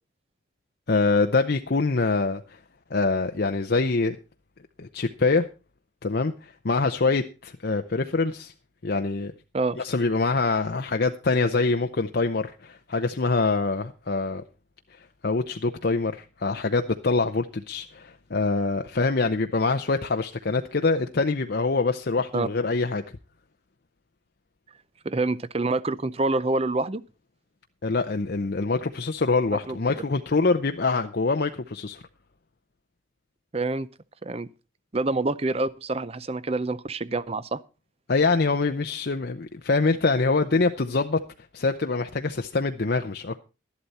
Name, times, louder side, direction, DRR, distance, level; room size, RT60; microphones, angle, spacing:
voice 1, 0.9-2.6 2.9-4.2 4.8-5.5 6.0-8.5 8.8-9.3 9.8-14.4 14.9-23.0 27.8-32.0 38.1-41.2 41.5-43.4, left 3 dB, 55° left, 0.7 m, -25 dB
voice 2, 25.0-27.0 29.7-29.8 33.5-33.9 34.2-34.5 34.9-37.6, right 2 dB, 30° right, 0.6 m, -26 dB
12.5 x 11.5 x 4.2 m
head